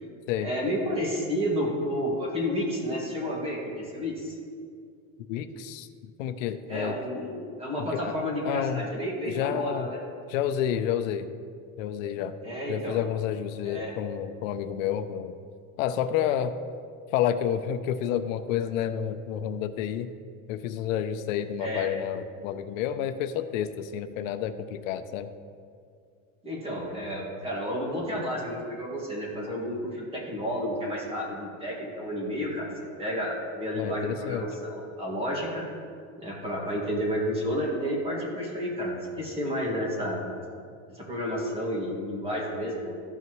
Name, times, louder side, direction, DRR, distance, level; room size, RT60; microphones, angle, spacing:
voice 1, 0.4-4.4 6.7-10.0 12.4-13.0 13.6-13.9 21.6-21.9 26.4-32.7 33.0-35.6 36.2-40.2 41.1-42.9, equal, 15° right, -4 dB, 1.9 m, -31 dB
voice 2, 5.3-7.0 7.8-8.2 8.4-8.9 9.3-9.9 10.3-11.3 11.8-12.4 12.7-15.4 15.8-16.5 17.1-20.1 20.5-25.3 33.7-34.5, left 9 dB, 85° left, 10 dB, 0.6 m, -30 dB
14.0 x 5.7 x 3.1 m, 2.3 s
cardioid pair, 165°, 38 cm